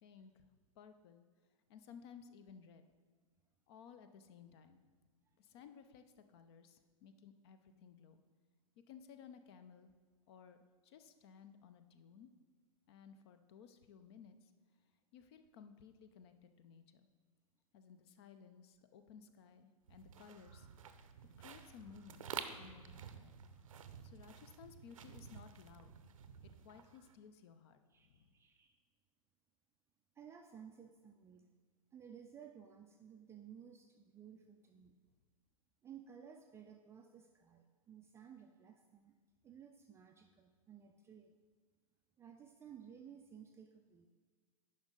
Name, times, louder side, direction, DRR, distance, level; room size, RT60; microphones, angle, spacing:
voice 1, 0.0-0.5 0.8-1.2 1.7-2.8 3.7-4.8 5.4-8.2 8.9-9.9 10.3-10.6 10.8-12.3 12.9-14.5 15.1-17.1 17.7-20.7 21.4-23.3 24.0-25.9 26.2-28.3, left 7 dB, 45° left, 9 dB, 0.6 m, -58 dB
sound 1, 19.9-27.1, right 7 dB, 65° right, 0.6 m, -51 dB
voice 2, 27.9-28.8 30.1-31.5 31.9-34.9 35.8-39.2 39.4-41.3 42.2-44.1, right 8 dB, 15° right, 3 dB, 0.4 m, -56 dB
10.5 x 5.3 x 3.8 m, 1.5 s
figure-of-eight pair, 105°, 18 cm